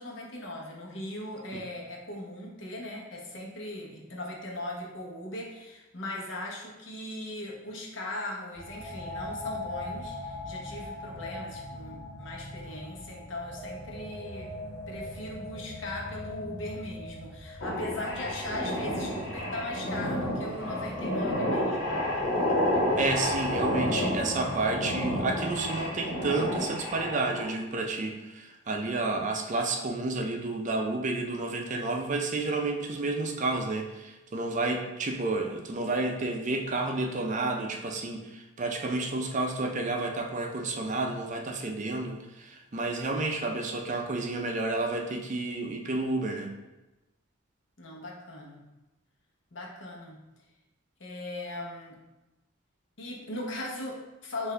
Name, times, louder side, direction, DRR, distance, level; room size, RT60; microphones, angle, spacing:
voice 1, 0.0-14.5 14.9-22.0 47.8-48.7 49.5-50.2 51.0-52.0 53.0-54.5, left 1 dB, 65° left, -1 dB, 0.9 m, -39 dB
sound 1, 8.5-25.7, left 1 dB, 10° left, 1.4 m, -40 dB
sound 2, 17.6-27.5, left 1 dB, 90° left, 1.4 m, -30 dB
voice 2, 23.0-46.5, right 2 dB, 40° right, 3 dB, 0.4 m, -30 dB
5.9 x 2.6 x 3.3 m, 1.0 s
head